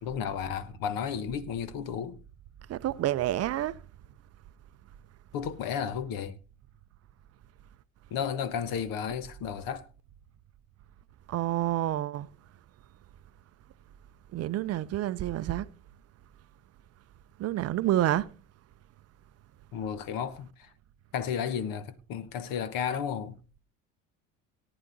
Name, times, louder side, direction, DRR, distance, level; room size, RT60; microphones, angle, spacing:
voice 1, 0.0-2.2 5.3-6.4 8.1-9.9 19.7-20.7 21.1-23.4, left 7 dB, 55° left, 1.1 m, -33 dB
voice 2, 2.7-3.7 11.3-12.3 14.3-15.7 17.4-18.3, right 14 dB, 40° right, 0.5 m, -28 dB
18.0 x 9.8 x 2.6 m
hypercardioid pair, 75°, 41 cm